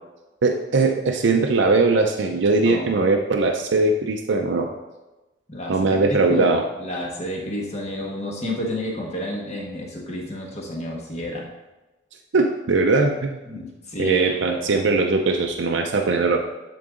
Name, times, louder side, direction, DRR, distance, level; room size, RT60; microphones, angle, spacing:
voice 1, 0.4-4.7 5.7-6.6 12.3-13.4 14.0-16.4, right 3 dB, 75° right, 2 dB, 0.5 m, -20 dB
voice 2, 5.5-11.5 13.4-14.8, equal, 35° left, -1 dB, 1.4 m, -30 dB
10.5 x 3.8 x 3.8 m, 1.1 s
head